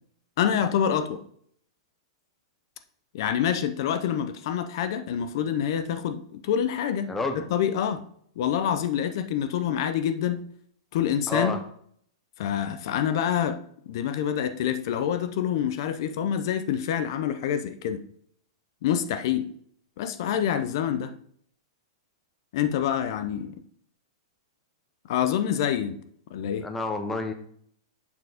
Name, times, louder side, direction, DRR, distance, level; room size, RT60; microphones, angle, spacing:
voice 1, 0.4-1.2 3.1-7.1 7.3-8.0 8.4-10.4 10.9-11.5 12.4-18.0 18.8-19.5 20.0-21.1 22.5-23.6 25.0-26.0 26.3-26.7, left 9 dB, 55° left, 0.6 m, -26 dB
voice 2, 7.1-7.4 11.3-11.6 26.6-27.3, left 2 dB, 10° left, 0.8 m, -29 dB
7.0 x 4.2 x 5.0 m
hypercardioid pair, 150°, 3 cm